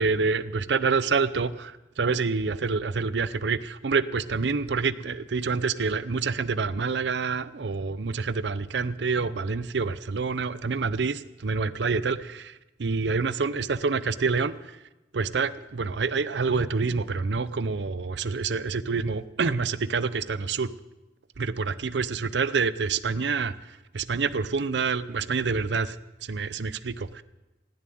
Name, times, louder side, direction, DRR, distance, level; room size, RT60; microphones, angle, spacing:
voice 1, 0.0-14.8 15.1-20.7 21.4-26.0 26.2-27.2, right 4 dB, 80° right, 15 dB, 0.6 m, -27 dB
17.0 x 7.1 x 9.3 m, 1.0 s
head